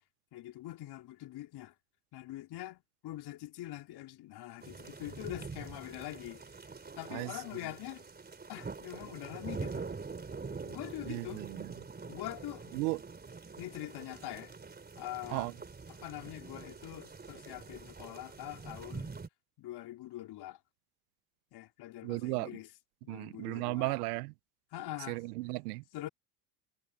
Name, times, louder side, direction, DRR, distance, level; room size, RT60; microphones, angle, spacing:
voice 1, 0.3-1.7 2.1-6.4 7.0-8.0 8.5-9.9 10.5-11.4 12.1-12.7 13.6-14.5 15.0-15.5 16.0-19.1 19.6-20.6 21.5-22.7 23.0-23.9 24.7-25.2 25.9-26.1, left 15 dB, 55° left, 4.5 m, -44 dB
sound 1, 4.6-19.3, right 4 dB, 20° right, 3.8 m, -45 dB
voice 2, 11.1-11.7 12.7-13.0 15.3-15.5 22.0-22.5 23.1-24.3 25.1-25.8, right 23 dB, 75° right, 1.3 m, -35 dB
hypercardioid pair, 80°, 47 cm